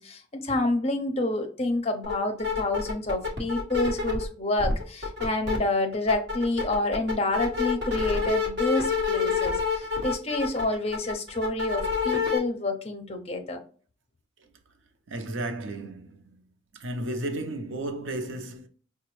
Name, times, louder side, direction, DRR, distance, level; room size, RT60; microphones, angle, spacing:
voice 1, 0.0-13.6, left 2 dB, 30° left, 0.6 m, -28 dB
sound 1, 2.0-2.1 2.4-4.3 4.6-5.6 5.9-12.4, left 5 dB, 55° right, 1.2 m, -27 dB
voice 2, 15.1-16.4 16.7-18.7, right 1 dB, 80° right, 0.6 m, -33 dB
5.0 x 2.2 x 3.0 m
head